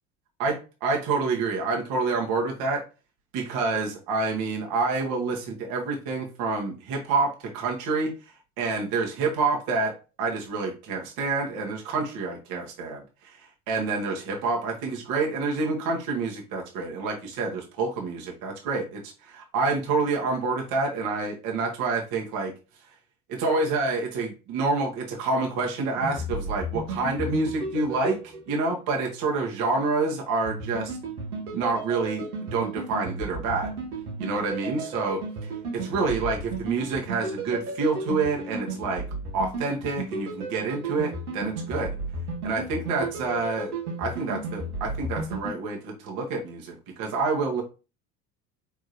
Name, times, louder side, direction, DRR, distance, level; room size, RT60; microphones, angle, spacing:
voice 1, 0.4-2.8 3.3-22.5 23.3-31.0 31.5-33.7 34.2-39.0 39.3-41.9 42.4-43.7 44.0-47.6, right 3 dB, 50° right, 1 dB, 1.6 m, -28 dB
sound 1, 26.0-28.9 30.5-45.5, right 2 dB, 75° right, 1.5 m, -34 dB
5.0 x 3.5 x 2.6 m, 0.31 s
figure-of-eight pair, 70°, 46 cm